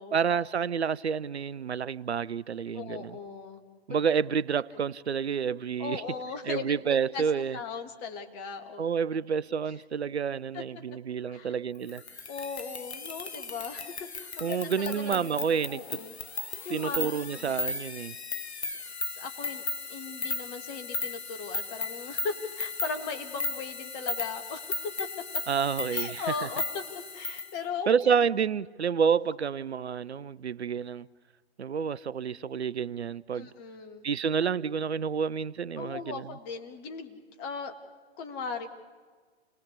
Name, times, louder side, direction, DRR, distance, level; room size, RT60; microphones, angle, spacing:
voice 1, 0.1-3.2 3.9-6.0 6.4-7.6 8.8-12.0 14.4-16.0 16.7-18.2 25.5-26.5 27.9-31.1 31.6-33.5 34.0-36.4, right 6 dB, 80° right, 0.7 m, -29 dB
voice 2, 2.7-3.6 5.8-7.2 7.5-8.9 10.5-10.6 11.2-11.5 12.3-15.4 15.7-16.2 16.6-17.1 17.4-17.5 19.2-25.1 25.9-26.8 27.1-28.2 33.3-34.1 35.8-37.8 38.2-38.7, left 5 dB, 30° left, 2.2 m, -38 dB
sound 1, 11.9-27.5, left 3 dB, 80° left, 1.2 m, -36 dB
28.5 x 19.0 x 8.3 m
figure-of-eight pair, 120°, 32 cm